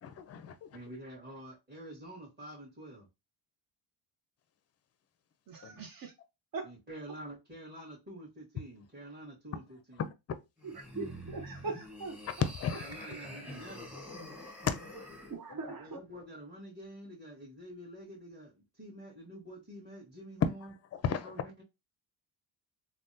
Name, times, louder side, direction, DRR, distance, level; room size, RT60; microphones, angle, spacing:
voice 1, 0.0-0.8 12.6-12.9 14.7-14.8 20.4-21.3, left 7 dB, 35° left, 0.4 m, -33 dB
voice 2, 0.7-3.1 5.6-5.8 6.6-10.0 12.7-14.0 15.5-20.7 21.2-21.6, right 1 dB, 20° right, 1.5 m, -48 dB
voice 3, 5.5-6.1 6.5-6.7 10.6-12.2 15.3-16.0, right 4 dB, 45° right, 0.7 m, -41 dB
sound 1, 10.6-15.4, left 1 dB, 5° right, 1.1 m, -46 dB
3.4 x 2.2 x 2.7 m
cardioid pair, 85°, 48 cm